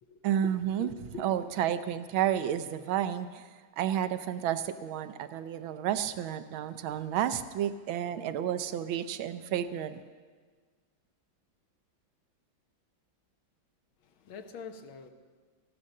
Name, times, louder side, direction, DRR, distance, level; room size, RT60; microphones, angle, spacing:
voice 1, 0.2-0.9 1.2-3.4 3.8-10.0, right 10 dB, 85° right, 1.4 m, -31 dB
voice 2, 0.8-1.6 14.0-15.1, left 5 dB, 85° left, 1.8 m, -45 dB
15.0 x 11.5 x 6.5 m
omnidirectional pair, 2.2 m